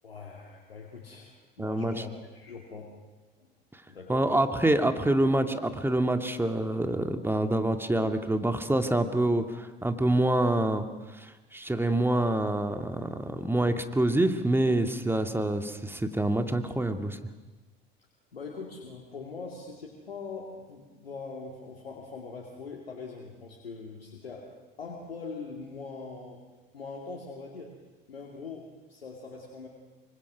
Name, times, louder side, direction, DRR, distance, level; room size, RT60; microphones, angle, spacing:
voice 1, 0.0-2.9 3.9-4.3 18.3-24.5 24.8-26.4 26.7-27.8 28.1-29.7, left 4 dB, 90° left, 0 dB, 2.5 m, -42 dB
voice 2, 1.6-2.0 4.1-10.9 11.1-17.2, right 1 dB, 5° right, 7 dB, 2.3 m, -26 dB
26.0 x 24.5 x 6.3 m, 1.2 s
hypercardioid pair, 65°, 29 cm